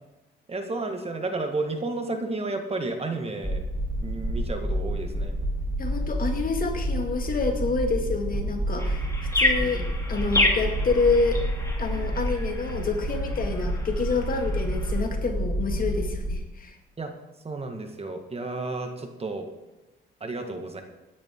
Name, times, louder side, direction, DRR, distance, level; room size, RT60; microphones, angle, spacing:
voice 1, 0.5-3.6 4.0-5.4 9.6-9.9 17.0-17.1 17.4-19.5 20.2-20.8, right 2 dB, 30° right, 5 dB, 1.7 m, -32 dB
sound 1, 3.4-16.4, right 1 dB, 10° right, 2.5 m, -29 dB
voice 2, 5.8-9.1 9.3-9.8 10.1-11.4 11.8-16.8, left 4 dB, 45° left, 3 dB, 2.2 m, -27 dB
sound 2, 8.8-15.0, left 1 dB, 15° left, 2.7 m, -30 dB
17.0 x 10.5 x 3.8 m, 1.0 s
cardioid pair, 90°, 20 cm